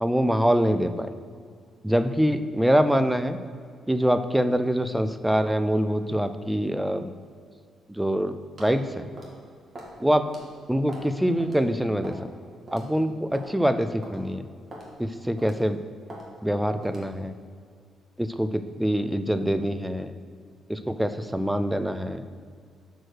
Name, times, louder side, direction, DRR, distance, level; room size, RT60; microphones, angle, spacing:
voice 1, 0.0-1.1 1.8-3.4 3.9-7.1 7.9-9.1 10.0-10.3 10.7-12.2 12.7-14.4 15.0-15.8 16.4-17.3 18.2-20.1 20.7-22.2, equal, 5° right, 10 dB, 0.4 m, -24 dB
sound 1, 8.6-8.8 9.2-9.4 9.7-9.9 10.3-10.4 10.9-11.1 11.4-11.6 12.0-12.3 12.7-12.8 13.3-13.5 14.0-14.2 14.7-14.9 15.4-15.6 16.1-16.3 16.8-17.1, right 1 dB, 30° right, 1.7 m, -41 dB
6.4 x 4.6 x 6.3 m, 2.1 s
cardioid pair, 90°, 0 cm